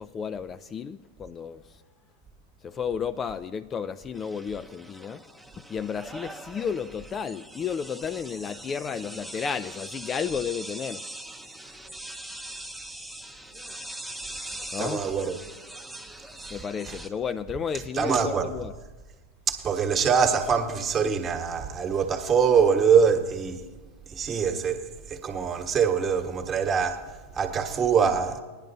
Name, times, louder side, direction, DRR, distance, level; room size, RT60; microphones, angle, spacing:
voice 1, 0.0-1.6 2.6-5.3 5.7-11.1 14.7-15.1 16.5-18.7, left 7 dB, 25° left, 0.3 m, -32 dB
sound 1, 4.1-17.1, right 1 dB, ahead, 0.7 m, -41 dB
voice 2, 14.8-15.4 16.9-17.0 17.9-18.5 19.5-23.7 24.1-28.4, right 6 dB, 30° right, 1.2 m, -24 dB
19.5 x 10.5 x 2.7 m
hypercardioid pair, 95°, 0 cm